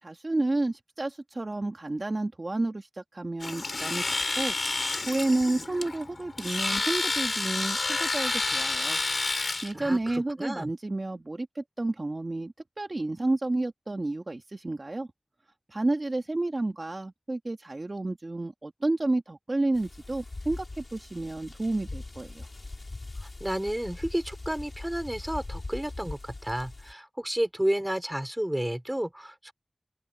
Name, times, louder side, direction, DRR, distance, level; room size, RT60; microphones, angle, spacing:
voice 1, 0.0-4.5 5.1-9.0 9.6-15.1 15.7-22.5, right 2 dB, 60° right, 1.7 m, -30 dB
Domestic sounds home sounds, 3.4-9.7, left 3 dB, 90° left, 4.1 m, -29 dB
voice 2, 9.7-10.7 23.4-29.5, right 1 dB, 15° right, 5.4 m, -31 dB
sound 1, 19.7-26.9, left 2 dB, 70° left, 3.6 m, -41 dB
open air
wide cardioid pair, 45°, 0 cm